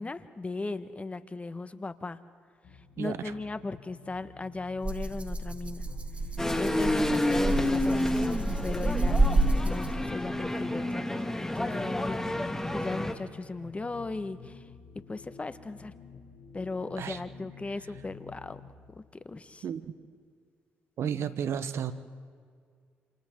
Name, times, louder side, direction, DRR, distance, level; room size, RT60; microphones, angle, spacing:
voice 1, 0.0-2.2 3.0-5.8 6.5-14.7 15.1-15.9 16.5-18.6 19.0-19.6, left 3 dB, 25° left, 12 dB, 1.3 m, -37 dB
sound 1, 2.6-18.7, left 5 dB, 75° left, 2.1 m, -51 dB
voice 2, 3.0-3.3 17.0-17.2 19.6-19.9 21.0-21.9, right 8 dB, 70° right, 12 dB, 1.1 m, -32 dB
Rattle (instrument), 4.8-10.2, right 2 dB, 25° right, 2.1 m, -29 dB
sound 2, 6.4-13.1, left 1 dB, 10° left, 2.1 m, -29 dB
28.5 x 27.5 x 3.8 m, 2.1 s
supercardioid pair, 55°, 5 cm